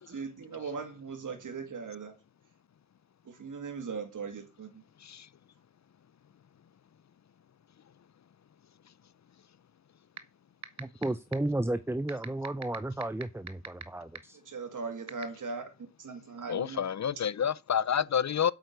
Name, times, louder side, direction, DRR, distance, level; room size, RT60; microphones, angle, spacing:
voice 1, 0.0-2.1 3.3-4.8 14.4-15.6 16.0-16.8, right 5 dB, 80° right, 2.4 m, -39 dB
sound 1, 10.2-10.3 10.6-11.0 11.3-11.4 12.1-13.8 14.2-14.3 15.1-15.2, right 6 dB, 60° right, 1.3 m, -37 dB
voice 2, 10.8-14.4, right 1 dB, 10° right, 0.6 m, -33 dB
voice 3, 16.5-18.5, left 8 dB, 60° left, 0.6 m, -29 dB
8.4 x 8.1 x 8.1 m
wide cardioid pair, 75°, 31 cm